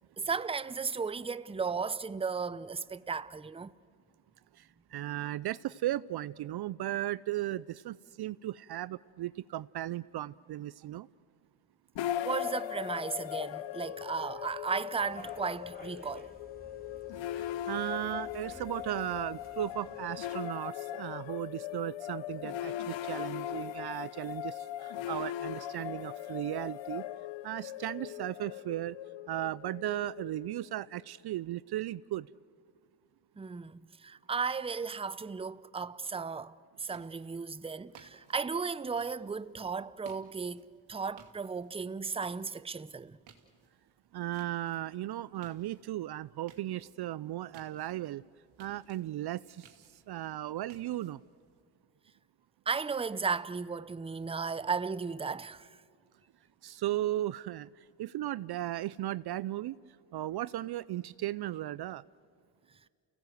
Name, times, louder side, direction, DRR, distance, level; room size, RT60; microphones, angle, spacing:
voice 1, 0.2-3.7 12.2-16.3 33.4-43.2 52.7-55.8, right 5 dB, 10° right, 0.6 m, -35 dB
voice 2, 4.9-11.1 17.3-27.0 27.4-29.0 29.3-32.3 44.1-48.2 48.6-49.6 50.1-51.2 56.6-57.7 58.0-59.8 60.1-62.0, right 14 dB, 55° right, 0.5 m, -36 dB
sound 1, 12.0-31.1, left 12 dB, 65° left, 0.8 m, -39 dB
sound 2, 15.0-20.3, left 1 dB, 20° left, 3.3 m, -54 dB
sound 3, 36.7-51.6, right 7 dB, 70° right, 2.6 m, -62 dB
29.5 x 17.0 x 7.9 m
supercardioid pair, 55°, 48 cm